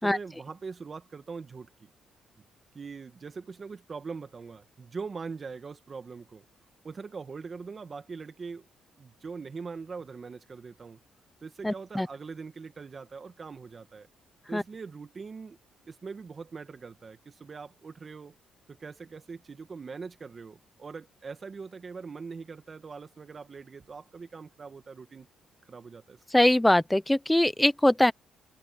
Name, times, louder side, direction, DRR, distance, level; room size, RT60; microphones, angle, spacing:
voice 1, 0.0-1.9 2.7-6.4 6.8-8.7 9.0-11.0 11.4-14.1 14.5-15.6 15.9-18.3 18.7-25.3 25.6-26.2, right 5 dB, 35° right, 2.0 m, -42 dB
voice 2, 11.6-12.1 14.5-14.6 26.3-28.1, left 1 dB, 5° left, 0.9 m, -22 dB
cardioid pair, 90°, 0 cm